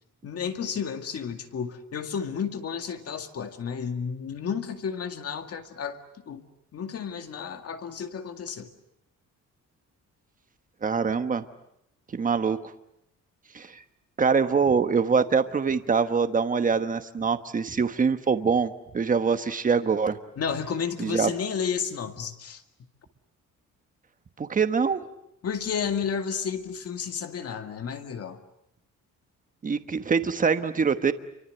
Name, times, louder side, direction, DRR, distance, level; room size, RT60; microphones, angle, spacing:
voice 1, 0.2-6.0 6.3-6.4 6.7-8.7 20.4-22.6 25.4-28.4, left 7 dB, 50° left, 7 dB, 2.2 m, -32 dB
voice 2, 10.8-11.4 12.1-12.6 13.5-13.8 14.2-20.2 21.0-21.3 24.4-25.0 29.6-31.1, right 5 dB, 25° right, 10 dB, 1.2 m, -24 dB
29.5 x 24.5 x 8.0 m, 0.78 s
wide cardioid pair, 175°, 32 cm